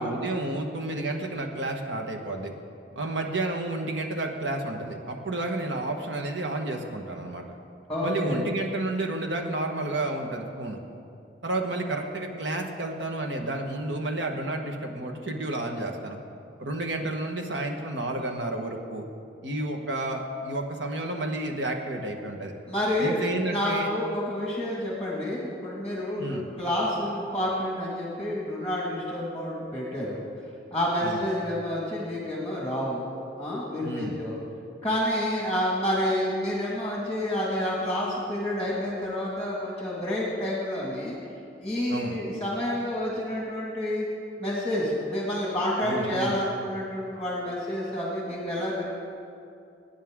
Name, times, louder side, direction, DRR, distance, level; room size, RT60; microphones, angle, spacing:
voice 1, 0.0-2.5 2.9-7.6 8.0-10.8 11.4-16.2 16.6-19.0 19.4-22.5 23.0-23.9 26.2-26.4 31.0-31.2 33.8-34.2 41.9-42.2 45.8-46.4, right 2 dB, 90° right, 3 dB, 1.4 m, -31 dB
voice 2, 7.9-8.5 22.7-30.2 30.7-34.4 34.8-41.2 41.6-44.1 44.4-48.9, left 1 dB, 5° left, -5 dB, 1.9 m, -29 dB
22.0 x 9.5 x 3.7 m, 2.6 s
head